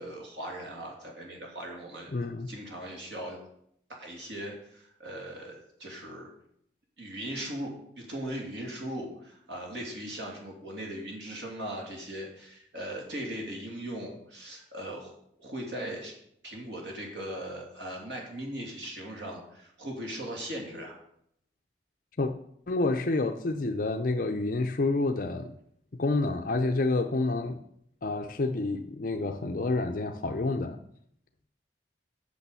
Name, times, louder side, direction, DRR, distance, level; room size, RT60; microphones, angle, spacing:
voice 1, 0.0-2.1 2.5-3.4 4.0-6.3 7.0-15.1 15.4-16.1 16.4-20.9, right 1 dB, 80° right, 0 dB, 2.9 m, -39 dB
voice 2, 2.1-2.5 22.2-22.3 22.7-25.5 26.0-27.6 28.0-30.8, left 2 dB, 50° left, 5 dB, 0.6 m, -28 dB
8.4 x 6.4 x 7.0 m, 0.71 s
head